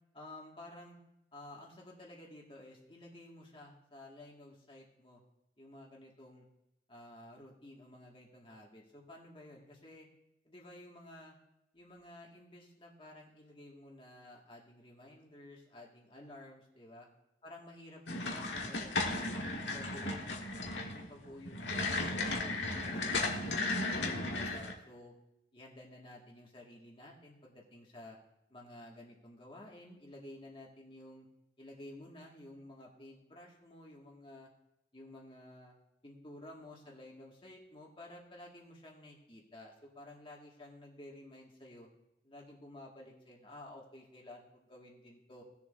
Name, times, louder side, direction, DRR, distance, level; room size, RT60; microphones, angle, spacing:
voice 1, 0.1-1.0 1.3-5.2 5.6-6.5 6.9-10.1 10.4-11.3 11.7-17.1 17.4-20.2 20.6-22.5 22.8-25.1 25.5-28.2 28.5-31.3 31.6-34.5 34.9-35.7 36.0-41.9 42.2-45.4, left 1 dB, 30° left, -2 dB, 1.9 m, -53 dB
sound 1, 18.1-24.7, left 2 dB, 80° left, 1.4 m, -35 dB
19.0 x 7.1 x 2.6 m, 0.86 s
head